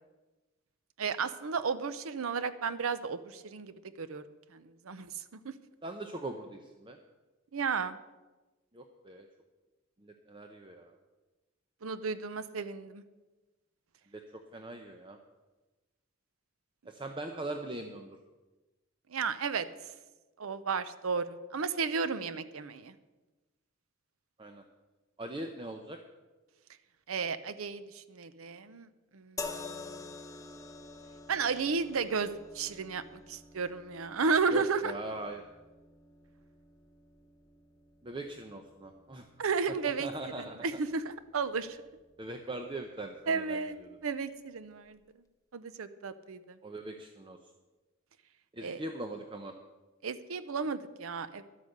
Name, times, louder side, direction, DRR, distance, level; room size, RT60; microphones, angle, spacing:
voice 1, 1.0-4.2 4.5-5.1 5.4-5.5 7.5-8.0 11.8-13.0 19.1-19.7 20.4-22.9 27.1-28.9 29.1-30.0 31.3-33.0 33.3-34.9 39.4-41.8 43.3-45.0 45.5-46.6 48.6-48.8 50.0-51.4, right 5 dB, 80° right, 13 dB, 0.6 m, -33 dB
voice 2, 5.8-7.0 8.7-9.3 10.0-10.9 14.1-15.2 16.9-18.2 24.4-24.6 25.2-26.0 34.5-35.4 38.0-39.3 40.0-40.6 42.2-43.9 46.6-47.4 48.5-49.5, right 2 dB, 25° right, 4 dB, 0.7 m, -41 dB
sound 1, 29.4-42.7 43.6-43.8, left 4 dB, 15° left, 0.8 m, -48 dB
12.0 x 8.3 x 6.6 m, 1.2 s
head